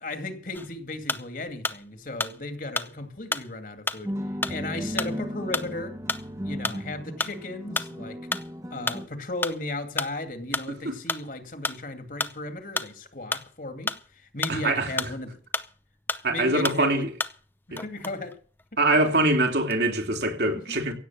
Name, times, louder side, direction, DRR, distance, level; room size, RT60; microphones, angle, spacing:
voice 1, 0.0-4.1 4.5-6.0 6.4-8.2 8.7-15.4 16.3-17.1 17.7-18.4 20.5-20.8, left 2 dB, 50° left, 2.3 m, -35 dB
sound 1, 0.5-1.9 2.2-15.8 16.1-17.5 17.8-19.0 19.4-20.0, left 3 dB, 10° left, 0.6 m, -32 dB
sound 2, 4.1-9.1, equal, 15° right, 1.1 m, -35 dB
voice 2, 14.5-14.9 16.2-17.1 17.7-17.8 18.8-20.9, right 2 dB, 70° right, 3.3 m, -24 dB
16.5 x 8.1 x 7.4 m
head